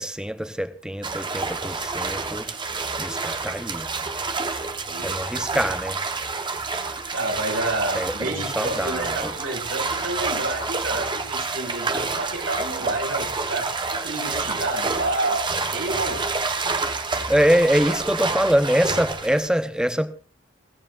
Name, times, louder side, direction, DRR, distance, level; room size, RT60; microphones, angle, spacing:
voice 1, 0.0-2.5 3.0-3.9 5.0-6.0 7.9-9.3 17.3-20.1, equal, 5° right, 1.0 m, -24 dB
sound 1, 1.0-19.5, right 4 dB, 25° right, 1.2 m, -28 dB
voice 2, 7.1-15.5 15.7-16.2, right 2 dB, 80° right, 7.8 m, -29 dB
29.5 x 9.9 x 2.6 m
head